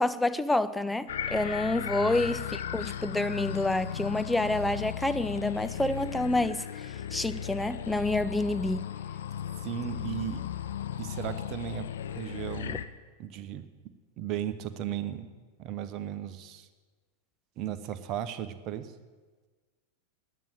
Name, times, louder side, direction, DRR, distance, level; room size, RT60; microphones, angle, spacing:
voice 1, 0.0-8.8 12.7-12.8, left 2 dB, 5° left, 0.5 m, -28 dB
sound 1, 1.1-12.9, left 9 dB, 60° left, 0.5 m, -36 dB
voice 2, 9.6-10.4 11.0-12.8 13.2-13.7 14.2-15.3 15.6-16.7 17.6-18.9, right 10 dB, 40° right, 0.9 m, -36 dB
10.0 x 9.1 x 9.2 m
figure-of-eight pair, 90°, 0 cm